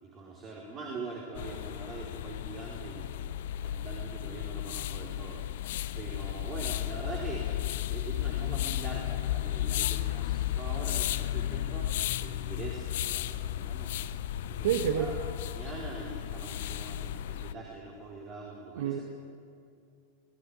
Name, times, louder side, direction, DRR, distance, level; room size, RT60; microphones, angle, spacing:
voice 1, 0.0-3.0 3.5-5.4 5.9-7.5 7.9-11.9 12.2-14.0 14.5-15.1 15.5-19.0, right 3 dB, 30° right, -2 dB, 4.5 m, -43 dB
sound 1, 1.3-17.5, left 13 dB, 60° left, 0.8 m, -34 dB
voice 2, 14.6-15.1 18.8-19.0, right 9 dB, 60° right, 5 dB, 1.6 m, -28 dB
23.0 x 17.5 x 9.9 m, 2.4 s
figure-of-eight pair, 90°, 0 cm